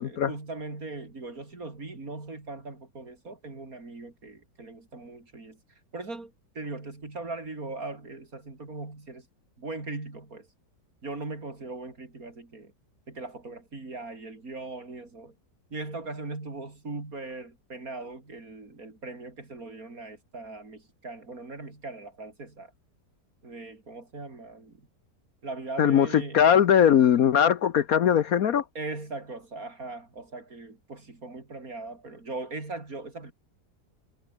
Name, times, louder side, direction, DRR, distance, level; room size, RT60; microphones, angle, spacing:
voice 1, 0.0-5.6 5.9-9.3 9.6-10.5 11.0-12.7 13.1-15.3 15.7-22.7 23.4-24.9 25.4-26.4 28.7-33.3, right 3 dB, 55° right, 4.7 m, -39 dB
voice 2, 25.8-28.6, left 9 dB, 60° left, 1.2 m, -20 dB
omnidirectional pair, 1.8 m